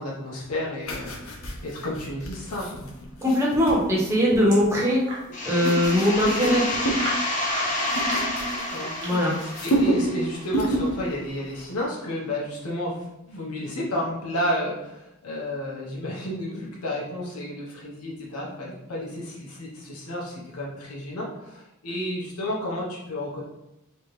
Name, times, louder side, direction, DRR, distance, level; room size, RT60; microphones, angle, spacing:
voice 1, 0.0-3.0 8.6-23.4, left 1 dB, 90° left, -4 dB, 1.1 m, -32 dB
sound 1, 0.8-4.7 5.3-7.1 7.4-9.1 9.4-10.2 10.5-11.0 11.3-11.5, right 1 dB, 65° left, 0.9 m, -29 dB
voice 2, 3.2-5.0 5.4-6.6 9.0-9.3, equal, 10° right, -5 dB, 1.0 m, -21 dB
sound 2, 3.7-5.3 5.8-5.9 6.1-6.2 6.9-9.4, equal, 55° right, 1.3 m, -36 dB
sound 3, 5.3-10.8, left 1 dB, 35° left, 1.0 m, -29 dB
4.4 x 3.3 x 3.2 m, 0.89 s
head